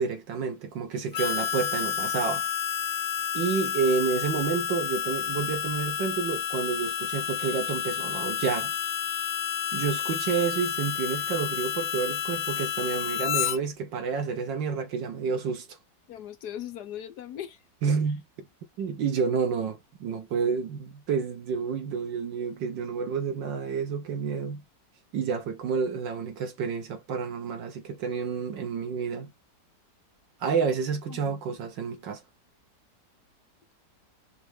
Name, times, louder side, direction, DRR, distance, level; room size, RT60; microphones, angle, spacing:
voice 1, 0.0-2.5 3.3-8.7 9.7-15.7 17.8-18.2 18.8-24.6 25.1-29.3 30.4-32.2, right 5 dB, 85° right, 1.9 m, -29 dB
Harmonica, 1.1-13.6, left 9 dB, 85° left, 1.4 m, -30 dB
voice 2, 16.1-17.6 31.1-31.4, left 10 dB, 65° left, 1.3 m, -39 dB
5.9 x 2.5 x 3.2 m
omnidirectional pair, 1.9 m